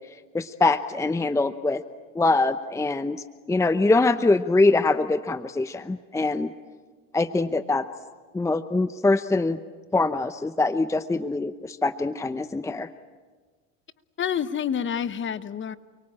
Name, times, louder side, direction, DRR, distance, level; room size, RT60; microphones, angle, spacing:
voice 1, 0.3-1.8 2.1-6.5 7.1-7.9 8.3-9.6 9.9-12.9, left 3 dB, 10° left, 12 dB, 0.8 m, -23 dB
voice 2, 14.2-15.8, left 8 dB, 30° left, 14 dB, 1.1 m, -28 dB
29.0 x 23.5 x 8.7 m, 1.4 s
supercardioid pair, 110°, 37 cm